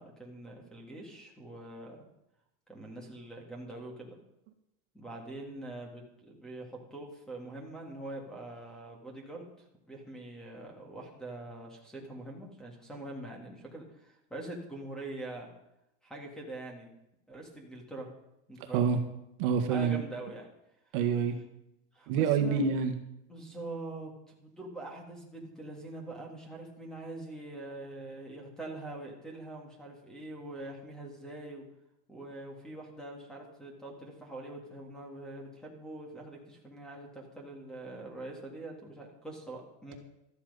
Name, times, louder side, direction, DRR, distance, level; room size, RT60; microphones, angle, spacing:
voice 1, 0.0-2.0 2.7-4.2 4.9-15.5 16.0-16.9 17.3-18.1 18.5-18.9 19.7-20.5 21.9-22.7 23.3-31.7 32.1-39.9, right 2 dB, ahead, 1 dB, 1.8 m, -44 dB
voice 2, 18.6-19.0 19.4-20.0 20.9-21.4 22.1-22.9, right 6 dB, 50° right, 6 dB, 1.5 m, -27 dB
13.0 x 11.5 x 5.4 m, 0.85 s
supercardioid pair, 180°, 34 cm